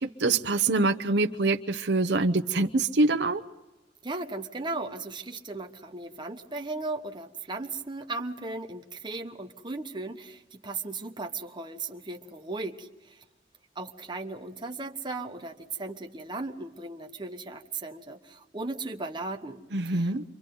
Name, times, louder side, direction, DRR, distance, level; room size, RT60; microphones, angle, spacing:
voice 1, 0.0-3.4 19.7-20.2, right 3 dB, 75° right, 5 dB, 0.9 m, -25 dB
voice 2, 4.0-13.2 13.7-20.1, right 3 dB, 25° right, 3 dB, 1.2 m, -37 dB
29.5 x 24.5 x 3.9 m, 1.1 s
head